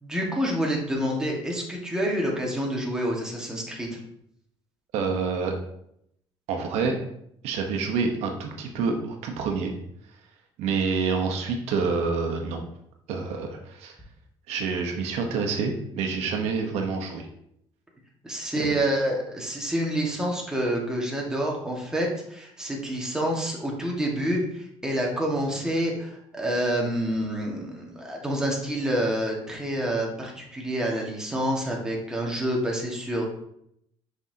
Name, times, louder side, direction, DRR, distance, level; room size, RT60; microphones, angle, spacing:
voice 1, 0.0-4.0 18.2-33.2, right 1 dB, 5° right, -2 dB, 1.7 m, -28 dB
voice 2, 4.9-5.5 6.5-7.0 7.4-9.7 10.6-12.6 13.1-13.9 14.5-17.3 18.6-18.7, right 5 dB, 80° right, 3 dB, 1.0 m, -27 dB
6.1 x 5.6 x 2.8 m, 0.74 s
cardioid pair, 120°, 11 cm